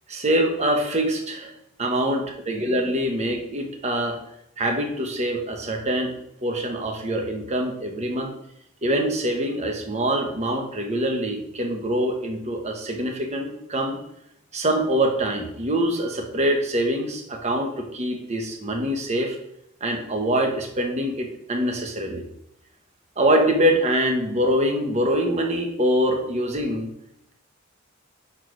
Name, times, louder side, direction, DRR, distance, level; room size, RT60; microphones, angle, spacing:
voice 1, 0.1-1.5 1.8-4.2 4.6-6.1 6.4-8.3 8.8-14.0 14.5-19.4 19.8-22.2 23.2-26.9, right 1 dB, 35° right, 3 dB, 1.0 m, -24 dB
6.2 x 4.6 x 4.5 m, 0.78 s
head